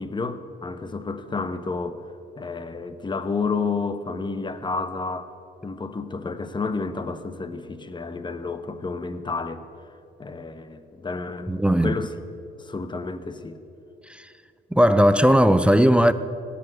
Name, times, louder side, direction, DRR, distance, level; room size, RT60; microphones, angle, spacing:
voice 1, 0.0-2.0 2.4-5.3 5.6-9.6 10.2-12.1 12.6-13.6, left 4 dB, 25° left, 1.0 m, -30 dB
voice 2, 11.5-11.9 14.1-14.3 14.7-16.1, equal, 5° right, 0.5 m, -17 dB
17.0 x 7.0 x 8.8 m
cardioid pair, 90°, 20 cm